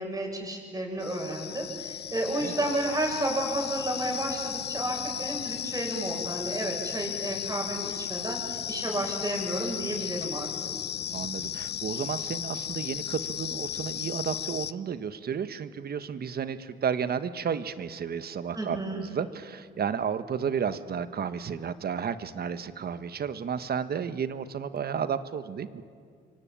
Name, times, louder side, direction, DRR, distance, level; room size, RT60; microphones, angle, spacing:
voice 1, 0.0-10.5 18.5-19.0, right 1 dB, 20° right, 1 dB, 7.4 m, -32 dB
sound 1, 1.0-14.7, left 10 dB, 55° left, 0.8 m, -35 dB
voice 2, 11.1-25.8, right 7 dB, 50° right, 12 dB, 1.3 m, -32 dB
27.0 x 23.5 x 8.8 m, 2.2 s
cardioid pair, 90°, 20 cm